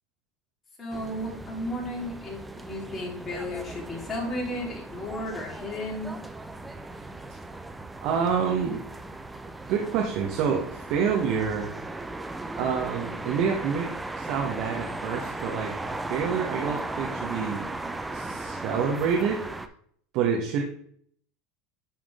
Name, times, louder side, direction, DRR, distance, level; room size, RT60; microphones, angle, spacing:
voice 1, 0.8-6.1, left 1 dB, 30° left, -3 dB, 3.2 m, -34 dB
sound 1, 0.9-19.7, right 2 dB, 10° right, 0.6 m, -37 dB
voice 2, 8.0-8.8 9.7-11.7 12.6-15.7 16.1-17.6 18.1-19.4 20.1-20.6, right 6 dB, 60° right, 0 dB, 1.1 m, -27 dB
10.0 x 3.7 x 3.6 m, 0.62 s
supercardioid pair, 105°, 0 cm